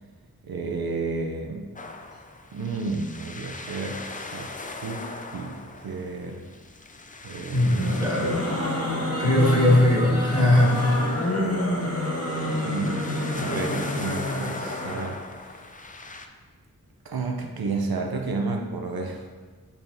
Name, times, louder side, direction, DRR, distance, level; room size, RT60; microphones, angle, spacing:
voice 1, 0.4-1.7 2.5-6.4 7.2-8.0 12.6-13.0 13.3-15.6 17.0-19.3, right 3 dB, 85° right, 2 dB, 0.6 m, -32 dB
sound 1, 1.8-16.3, left 3 dB, 25° left, 0.4 m, -39 dB
voice 2, 7.5-8.4 9.2-11.3, left 1 dB, 10° right, -7 dB, 1.9 m, -20 dB
sound 2, 7.8-15.1, left 1 dB, 45° left, 1.1 m, -28 dB
6.9 x 5.7 x 2.6 m, 1.5 s
wide cardioid pair, 60°, 36 cm